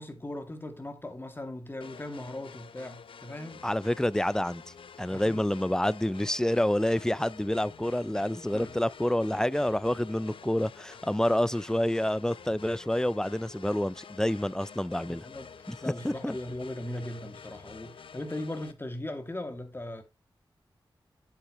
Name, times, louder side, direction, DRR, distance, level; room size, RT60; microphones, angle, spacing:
voice 1, 0.0-3.6 5.1-5.4 8.5-8.8 15.0-15.5 15.8-20.0, left 1 dB, 25° left, 2.4 m, -38 dB
sound 1, 1.8-18.7, left 6 dB, 80° left, 0.7 m, -49 dB
voice 2, 3.6-4.6 5.0-15.3 15.7-15.8 16.0-16.4, left 1 dB, 5° left, 0.4 m, -28 dB
8.6 x 7.8 x 3.0 m
cardioid pair, 65°, 9 cm